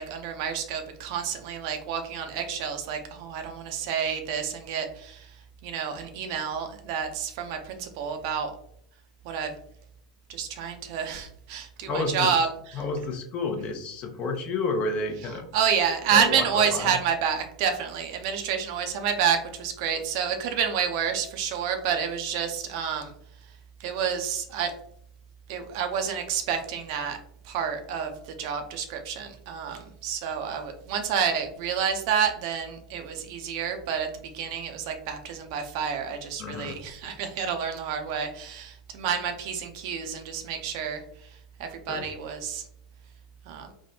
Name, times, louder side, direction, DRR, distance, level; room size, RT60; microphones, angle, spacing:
voice 1, 0.0-5.3 5.6-8.5 9.2-9.5 10.3-12.5 15.5-23.1 23.8-24.7 25.5-27.2 27.5-28.1 28.4-34.1 34.3-41.0 41.6-42.6 43.5-43.7, right 7 dB, 55° right, 6 dB, 0.5 m, -29 dB
voice 2, 11.9-12.5 12.7-15.4 16.1-17.0 36.4-36.8 41.9-42.1, left 3 dB, 35° left, 4 dB, 0.7 m, -30 dB
3.4 x 2.2 x 2.7 m, 0.68 s
figure-of-eight pair, 85°, 3 cm